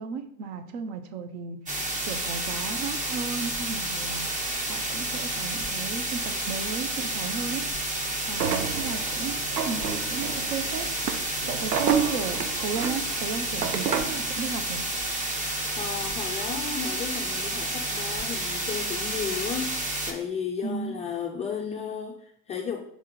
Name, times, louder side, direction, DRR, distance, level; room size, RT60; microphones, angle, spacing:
voice 1, 0.0-1.7 2.0-4.3 4.7-7.7 8.3-11.0 11.4-14.9 20.6-21.0, right 6 dB, 45° right, 9 dB, 0.7 m, -34 dB
sound 1, 1.7-20.1, right 1 dB, 15° right, 0.9 m, -30 dB
sound 2, 8.4-14.3, right 7 dB, 80° right, 0.7 m, -30 dB
voice 2, 15.8-22.8, left 7 dB, 15° left, 0 dB, 0.4 m, -34 dB
6.1 x 3.7 x 4.2 m, 0.66 s
figure-of-eight pair, 85°, 47 cm